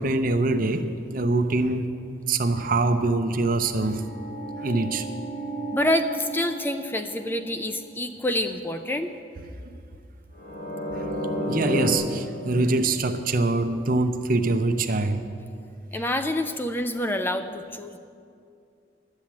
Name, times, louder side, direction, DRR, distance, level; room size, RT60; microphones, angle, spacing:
voice 1, 0.0-1.9 2.3-4.0 4.6-5.1 10.9-11.1 11.5-15.2 16.0-16.1, right 2 dB, 50° right, 8 dB, 0.7 m, -24 dB
sound 1, 3.2-7.8 10.3-11.9, equal, 65° left, 2.7 m, -32 dB
voice 2, 5.7-9.1 15.9-18.0, left 1 dB, 10° left, 7 dB, 0.4 m, -27 dB
11.5 x 7.7 x 8.6 m, 2.4 s
head